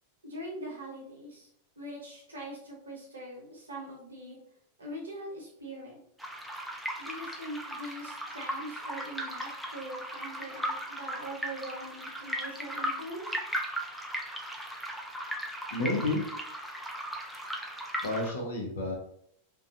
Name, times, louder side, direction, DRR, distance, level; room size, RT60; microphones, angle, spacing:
voice 1, 0.2-1.5 1.8-4.4 4.8-6.0 7.0-13.4, right 1 dB, 75° right, -2 dB, 0.7 m, -42 dB
sound 1, 6.2-18.3, equal, ahead, 0.4 m, -37 dB
voice 2, 15.7-16.3 18.0-19.0, left 2 dB, 65° left, 2 dB, 0.6 m, -30 dB
2.4 x 2.2 x 2.4 m, 0.69 s
figure-of-eight pair, 90°, 0 cm